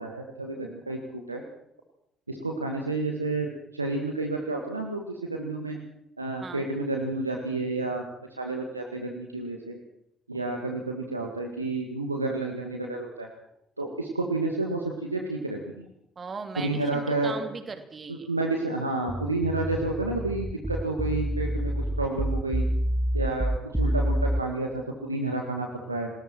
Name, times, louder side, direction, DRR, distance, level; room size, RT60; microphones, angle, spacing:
voice 1, 0.0-1.4 2.3-5.8 6.2-8.0 8.4-9.8 10.3-13.3 13.8-15.9 16.6-17.3 18.1-22.7 23.1-26.1, right 2 dB, 85° right, 2 dB, 1.8 m, -30 dB
voice 2, 16.2-18.3, right 4 dB, 35° right, 8 dB, 3.1 m, -38 dB
sound 1, 19.1-24.4, equal, 10° right, 1.0 m, -27 dB
28.5 x 20.0 x 4.5 m, 0.73 s
figure-of-eight pair, 45°, 0 cm